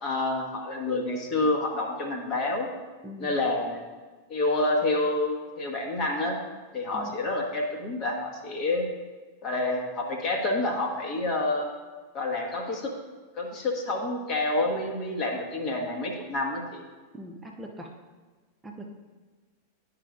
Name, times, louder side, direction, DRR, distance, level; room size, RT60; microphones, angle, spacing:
voice 1, 0.0-2.7 3.2-3.8 4.3-6.4 6.7-8.9 9.4-11.7 12.1-12.9 13.4-16.8, left 2 dB, 35° left, 1 dB, 1.2 m, -28 dB
voice 2, 3.0-3.4 6.9-7.1 17.1-17.9 18.6-18.9, right 1 dB, 10° right, -1 dB, 0.7 m, -41 dB
11.0 x 5.0 x 2.4 m, 1.4 s
figure-of-eight pair, 90°, 0 cm